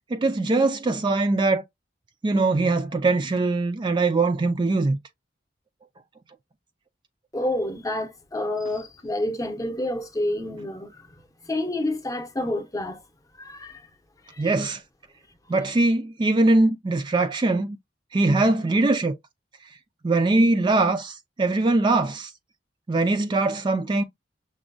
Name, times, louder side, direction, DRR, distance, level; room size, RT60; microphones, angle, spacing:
voice 1, 0.1-1.6 2.2-5.0 14.4-14.8 15.5-17.8 18.1-19.1 20.0-22.3 22.9-24.0, right 2 dB, 25° right, 0.3 m, -22 dB
voice 2, 7.3-11.0 11.4-13.0 13.4-13.8 14.3-14.5, left 1 dB, 20° left, 0.7 m, -29 dB
6.0 x 2.2 x 2.5 m
head